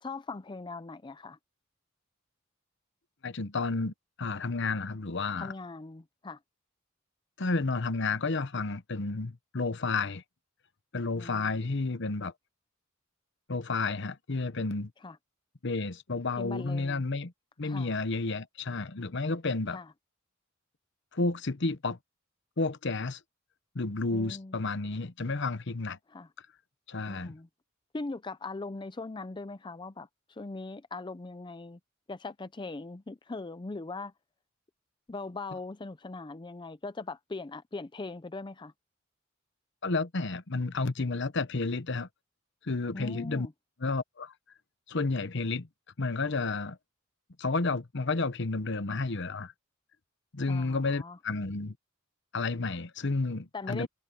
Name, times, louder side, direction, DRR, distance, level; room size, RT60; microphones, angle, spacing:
voice 1, 0.0-1.4 5.4-6.4 11.2-11.6 15.0-15.2 16.4-17.0 17.6-17.9 19.7-19.9 24.1-24.6 26.1-26.3 27.1-27.5 27.9-31.8 32.1-34.1 35.1-38.7 42.9-43.5 50.4-51.2 53.5-53.9, left 3 dB, 25° left, 0.5 m, -40 dB
voice 2, 3.2-5.5 7.4-10.2 10.9-12.3 13.5-14.9 15.6-17.3 17.6-19.8 21.1-22.0 22.6-23.2 23.7-26.0 26.9-27.3 39.8-42.1 42.6-43.5 43.8-44.3 44.9-45.7 46.0-46.8 47.4-49.5 50.3-51.7 52.3-53.9, left 3 dB, 60° left, 1.0 m, -31 dB
head